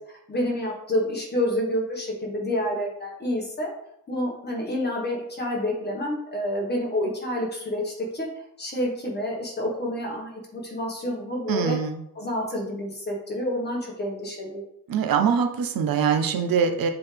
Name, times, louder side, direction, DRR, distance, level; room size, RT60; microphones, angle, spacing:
voice 1, 0.1-3.7 4.1-8.3 8.6-11.8 12.2-14.6, left 1 dB, 30° left, -2 dB, 1.6 m, -28 dB
voice 2, 11.5-12.0 14.9-16.9, right 6 dB, 85° right, 6 dB, 0.7 m, -23 dB
7.6 x 3.8 x 3.5 m, 0.78 s
wide cardioid pair, 170°, 34 cm